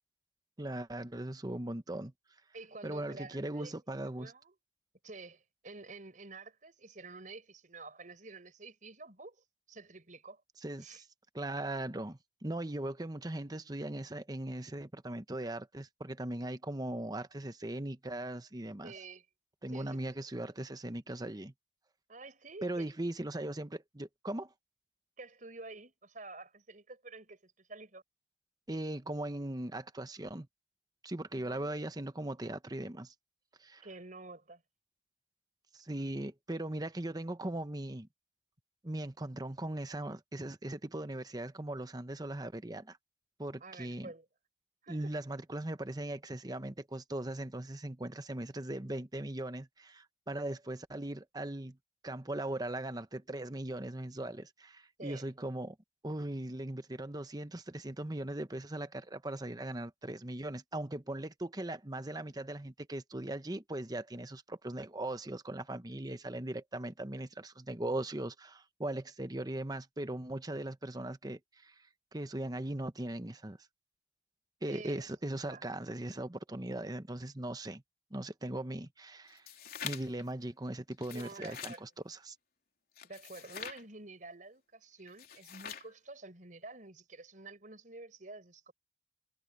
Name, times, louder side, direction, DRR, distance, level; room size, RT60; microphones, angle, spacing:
voice 1, 0.6-2.1 2.8-4.3 10.6-11.0 11.3-18.9 19.6-21.5 22.6-24.5 28.7-30.5 31.0-33.1 33.6-33.8 35.8-38.1 38.8-43.0 43.4-44.1 44.9-51.8 52.0-55.7 56.0-71.7 72.1-73.6 74.6-77.8 78.1-79.4 79.8-82.3, right 1 dB, 20° right, 1.0 m, -39 dB
voice 2, 2.5-3.7 4.2-4.5 5.0-10.4 10.8-11.0 18.8-19.2 19.7-20.2 22.1-22.9 25.2-28.0 31.3-31.8 33.8-34.6 43.6-44.3 44.8-45.2 55.0-55.3 74.7-75.0 75.5-75.6 81.1-81.8 83.0-88.7, right 3 dB, 45° right, 4.7 m, -49 dB
sound 1, 79.3-80.2 80.9-81.8 83.0-83.8 85.1-85.9, left 8 dB, 55° left, 3.5 m, -45 dB
head